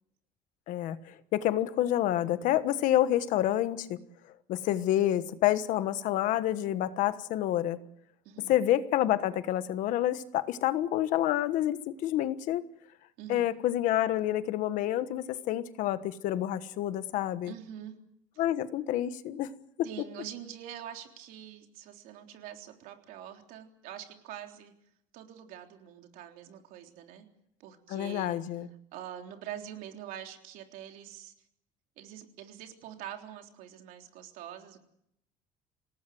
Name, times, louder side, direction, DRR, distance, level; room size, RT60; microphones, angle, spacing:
voice 1, 0.7-4.0 4.5-7.8 8.5-12.6 13.3-17.5 18.4-19.5 27.9-28.7, left 13 dB, 65° left, 12 dB, 1.3 m, -28 dB
voice 2, 17.4-18.0 18.3-18.4 19.8-24.7 25.1-27.2 27.6-28.4 28.9-31.3 32.0-34.8, right 10 dB, 80° right, 4 dB, 3.6 m, -45 dB
27.5 x 18.0 x 7.8 m, 0.74 s
cardioid pair, 175°, 14 cm